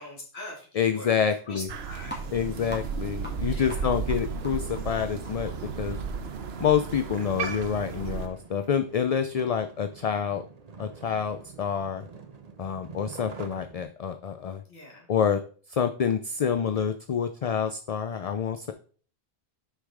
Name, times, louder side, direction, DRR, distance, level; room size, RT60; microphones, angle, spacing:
voice 1, 0.0-1.2 1.5-2.2 3.5-3.9 14.6-15.1, left 1 dB, 80° left, -2 dB, 2.6 m, -42 dB
voice 2, 0.8-1.7 2.3-5.5 5.8-6.0 6.6-10.4 10.8-12.0 12.6-14.6 15.1-15.4 15.7-18.7, left 7 dB, 50° left, 9 dB, 0.4 m, -27 dB
Crow, 1.7-8.3, right 5 dB, 75° right, 1.0 m, -34 dB
sound 1, 2.0-8.1, equal, 10° left, 2.4 m, -47 dB
sound 2, 3.1-13.8, right 5 dB, 40° right, 1.0 m, -49 dB
6.6 x 5.4 x 4.9 m, 0.43 s
omnidirectional pair, 1.1 m